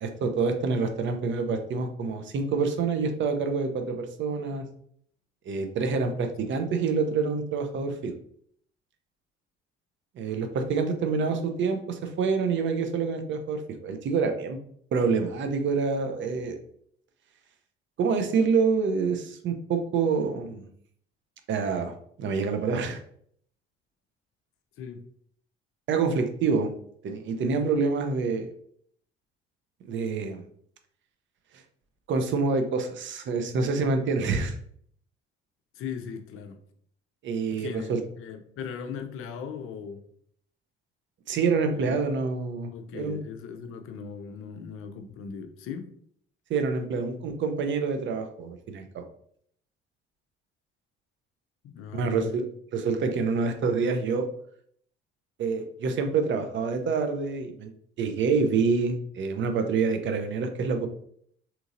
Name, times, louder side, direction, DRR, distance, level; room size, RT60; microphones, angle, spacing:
voice 1, 0.0-4.6 5.5-8.1 10.2-14.6 14.9-16.6 18.0-20.6 21.5-21.9 22.2-23.0 25.9-26.7 27.0-28.4 29.9-30.4 32.1-34.5 37.2-38.0 41.3-43.2 46.5-49.0 51.9-52.4 52.7-54.3 55.4-57.7 58.0-60.9, right 4 dB, 40° right, 6 dB, 0.6 m, -27 dB
voice 2, 35.8-36.6 37.5-40.0 41.7-42.0 42.7-45.9 51.6-52.4, left 7 dB, 45° left, 7 dB, 0.6 m, -38 dB
3.7 x 2.9 x 2.5 m, 0.64 s
figure-of-eight pair, 50°, 31 cm